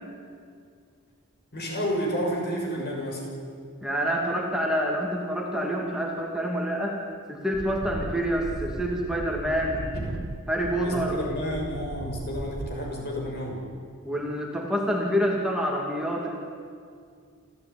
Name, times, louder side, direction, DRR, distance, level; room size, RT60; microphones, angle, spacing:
voice 1, 1.5-3.2 10.8-13.6, equal, 50° left, 0 dB, 6.5 m, -30 dB
voice 2, 3.8-7.0 7.3-9.9 10.5-11.2 14.1-16.4, equal, 5° right, -1 dB, 2.3 m, -27 dB
sound 1, 7.5-12.8, right 1 dB, 65° right, 1.1 m, -37 dB
28.0 x 14.0 x 9.7 m, 2.2 s
head